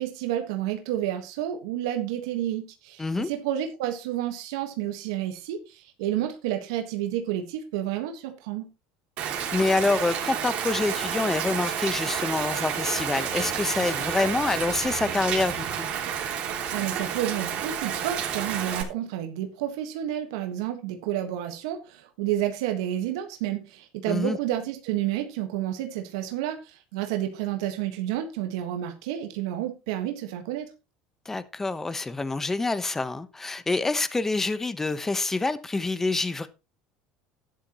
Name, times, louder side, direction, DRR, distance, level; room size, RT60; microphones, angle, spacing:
voice 1, 0.0-8.7 16.7-30.7, right 12 dB, 80° right, 1.5 m, -30 dB
voice 2, 3.0-3.3 9.5-15.9 24.1-24.4 31.2-36.5, left 3 dB, 15° left, 1.0 m, -26 dB
Rain, 9.2-18.8, right 8 dB, 55° right, 3.1 m, -30 dB
12.5 x 10.5 x 3.0 m
supercardioid pair, 105°, 3 cm